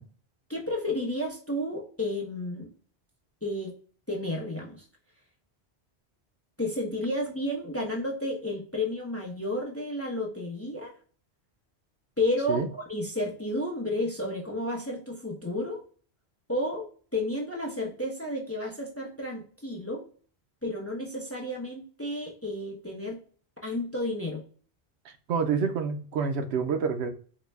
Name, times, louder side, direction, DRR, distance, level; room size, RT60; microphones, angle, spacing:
voice 1, 0.5-2.7 3.4-3.7 4.1-4.8 6.6-10.9 12.2-15.8 16.5-16.9 17.1-20.0 20.6-23.2 23.6-24.4, left 1 dB, 20° left, 0.5 m, -31 dB
voice 2, 25.1-27.1, right 5 dB, 85° right, 0.9 m, -28 dB
3.9 x 2.1 x 3.2 m
omnidirectional pair, 1.1 m